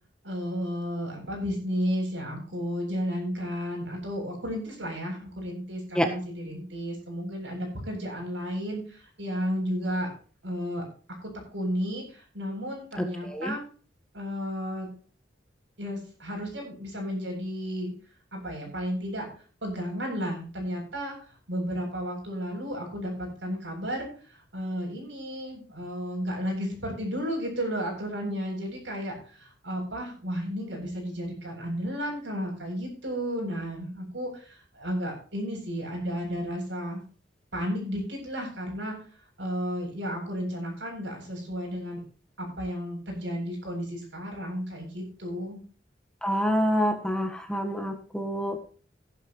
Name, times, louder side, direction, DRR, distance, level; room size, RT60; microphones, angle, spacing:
voice 1, 0.2-10.1 10.4-10.8 11.2-13.6 14.1-14.9 15.8-17.9 18.3-19.3 19.6-21.1 21.5-24.1 24.5-37.0 37.5-38.9 39.4-42.0 42.4-45.6, equal, 75° right, 1 dB, 7.8 m, -33 dB
voice 2, 13.0-13.5 46.2-48.6, equal, 5° left, 4 dB, 1.4 m, -27 dB
15.0 x 11.5 x 3.2 m, 0.39 s
head